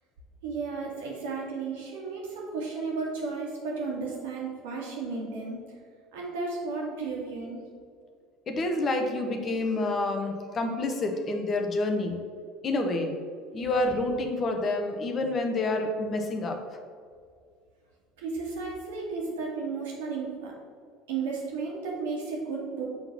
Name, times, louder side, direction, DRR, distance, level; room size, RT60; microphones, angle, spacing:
voice 1, 0.4-5.6 6.1-7.7 18.2-20.5 21.1-22.8, right 4 dB, 75° right, -3 dB, 2.0 m, -33 dB
voice 2, 8.5-12.2 12.6-13.1 13.5-16.8, left 2 dB, 40° left, 4 dB, 1.0 m, -28 dB
6.7 x 3.9 x 5.9 m, 2.1 s
hypercardioid pair, 70°, 0 cm